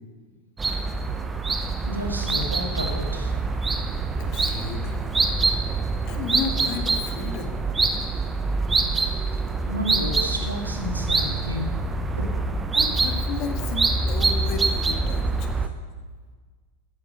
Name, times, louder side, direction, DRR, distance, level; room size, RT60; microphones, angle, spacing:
sound 1, 0.6-15.7, right 3 dB, 15° right, 0.9 m, -25 dB
voice 1, 1.8-3.4 3.8-3.9 9.7-11.8 12.2-12.3, equal, 80° right, 2 dB, 2.0 m, -31 dB
voice 2, 4.2-5.3 6.0-7.6 12.7-15.5, left 6 dB, 40° left, 5 dB, 1.7 m, -33 dB
14.5 x 9.6 x 6.4 m, 1.5 s
figure-of-eight pair, 90°, 0 cm